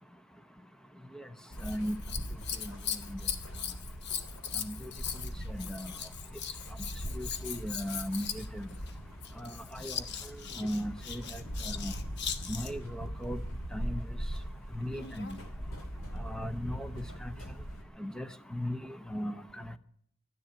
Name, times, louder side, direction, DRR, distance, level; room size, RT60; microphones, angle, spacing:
sound 1, 1.5-17.8, equal, 75° left, 2.7 m, -41 dB
Scissors, 1.5-12.9 14.8-15.4 16.2-16.3, left 8 dB, 55° left, 1.1 m, -40 dB
voice 1, 1.6-2.0 2.6-3.2 4.6-4.9 5.5-5.9 7.1-8.7 9.4-11.9 12.5-13.4 13.7-14.2 14.7-15.4 16.1-17.3 18.0-19.8, equal, 5° left, 11 dB, 0.8 m, -38 dB
12.5 x 10.0 x 8.8 m, 0.66 s
head